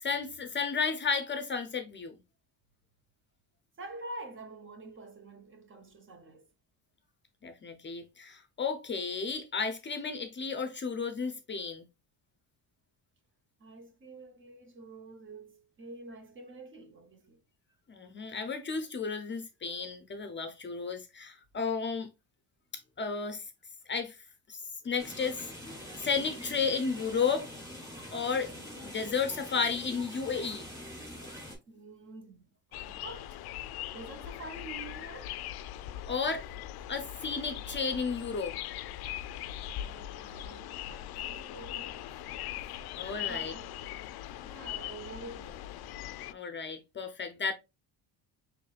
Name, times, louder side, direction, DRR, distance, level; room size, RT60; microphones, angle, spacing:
voice 1, 0.0-2.2 7.4-11.9 17.9-22.1 23.0-23.4 23.9-24.2 24.5-25.4 26.0-27.5 28.1-28.5 28.8-30.7 36.1-36.5 36.9-38.5 43.0-43.5 46.3-47.5, left 5 dB, 30° left, 0.6 m, -33 dB
voice 2, 3.8-6.5 13.6-17.4 31.7-33.4 33.9-35.4 39.8-42.1 43.1-43.7 44.4-45.7, right 2 dB, 30° right, 0.9 m, -47 dB
sound 1, 25.0-31.6, left 1 dB, 10° right, 3.1 m, -44 dB
sound 2, 32.7-46.3, left 12 dB, 70° left, 0.5 m, -40 dB
6.5 x 3.2 x 2.4 m
cardioid pair, 150°, 39 cm